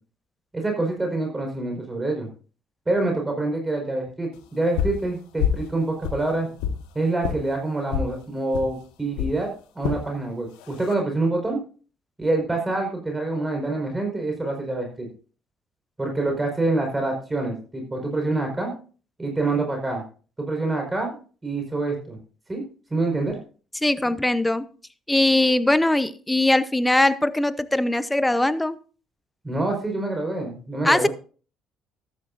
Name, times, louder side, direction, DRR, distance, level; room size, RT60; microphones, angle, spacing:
voice 1, 0.5-2.3 2.8-6.5 6.9-9.5 9.7-11.6 12.2-15.1 16.0-18.7 19.2-20.0 20.4-22.2 22.5-22.6 22.9-23.4 29.4-31.1, right 2 dB, 20° right, 5.0 m, -26 dB
sound 1, 4.8-5.0 5.4-5.7 6.0-6.8 7.2-7.4 7.9-8.1 8.5-8.7 9.2-9.4 9.8-10.0 10.6-10.9, left 8 dB, 80° left, 1.4 m, -26 dB
voice 2, 23.8-24.7 25.1-28.8 30.8-31.1, left 1 dB, 10° left, 0.8 m, -21 dB
13.5 x 12.0 x 2.6 m
hypercardioid pair, 65°, 0 cm